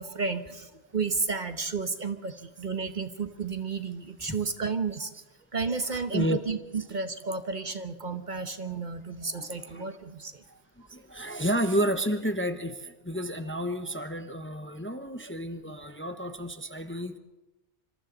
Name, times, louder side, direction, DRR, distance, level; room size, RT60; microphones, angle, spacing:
voice 1, 0.0-5.1 5.5-10.6, right 4 dB, 45° right, 9 dB, 1.2 m, -32 dB
voice 2, 5.9-6.4 9.4-9.8 10.9-17.2, equal, 10° left, 8 dB, 0.9 m, -31 dB
26.0 x 26.0 x 4.0 m, 1.1 s
omnidirectional pair, 1.1 m